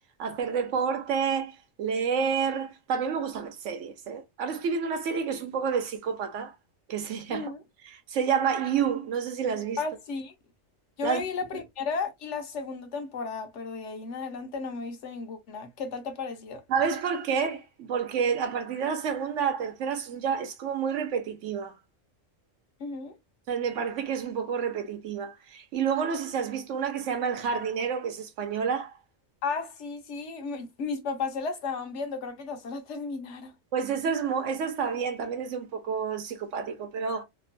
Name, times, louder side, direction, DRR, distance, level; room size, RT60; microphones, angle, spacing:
voice 1, 0.2-6.5 6.9-7.5 7.9-9.8 11.0-11.2 16.7-21.8 23.5-28.9 33.7-37.2, right 6 dB, 70° right, 1.0 m, -29 dB
voice 2, 7.3-7.6 9.8-10.3 11.0-16.6 22.8-23.2 29.4-33.5, left 4 dB, 65° left, 1.0 m, -34 dB
3.0 x 2.1 x 2.5 m
omnidirectional pair, 1.4 m